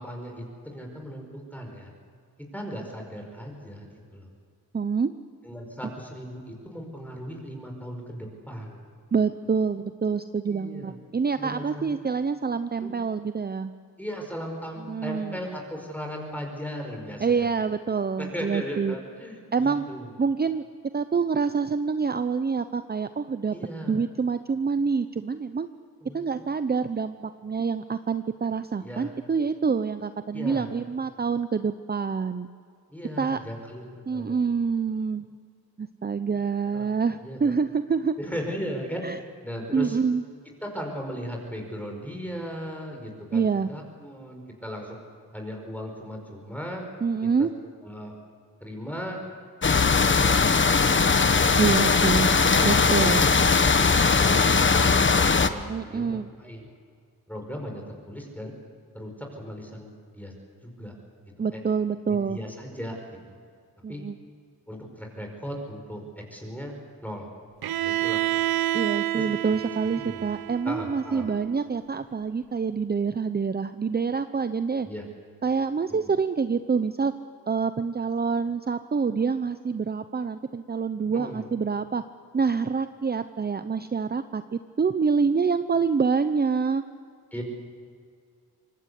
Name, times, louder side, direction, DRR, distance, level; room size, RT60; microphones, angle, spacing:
voice 1, 0.0-1.9 2.5-4.3 5.4-8.9 10.5-11.0 11.3-11.8 12.8-12.9 14.0-17.7 18.2-20.1 23.5-24.0 26.0-26.5 28.8-29.1 30.3-30.7 32.9-34.5 36.7-36.8 37.2-37.5 38.2-40.0 40.6-45.0 45.3-46.9 47.2-47.5 47.8-48.1 48.6-49.2 50.0-51.1 55.3-56.7 57.3-58.5 58.9-60.3 60.6-60.9 61.2-61.6 62.1-63.4 63.9-64.0 64.7-66.7 67.0-67.3 67.8-68.4 69.1-69.3 69.9-70.3 70.6-71.3 74.8-75.1 76.0-76.1 81.1-81.5 87.3-87.4, equal, 5° left, 1 dB, 5.1 m, -37 dB
voice 2, 4.7-5.1 9.1-13.7 14.9-15.4 17.2-19.0 19.5-19.8 20.2-20.6 20.9-23.6 23.8-25.7 26.1-32.5 33.2-33.4 34.1-35.3 35.8-38.1 39.0-39.2 39.7-40.2 43.3-43.7 47.0-47.5 51.6-52.3 52.6-53.3 55.7-56.3 61.4-62.4 63.8-64.2 68.7-74.9 75.4-77.1 77.5-82.0 82.3-86.8, right 5 dB, 25° right, 11 dB, 0.7 m, -26 dB
windy lane, 49.6-55.5, left 4 dB, 30° left, 1.2 m, -20 dB
Bowed string instrument, 67.6-71.5, right 14 dB, 80° right, 0.7 m, -29 dB
25.0 x 19.0 x 8.3 m, 2.2 s
cardioid pair, 80°, 36 cm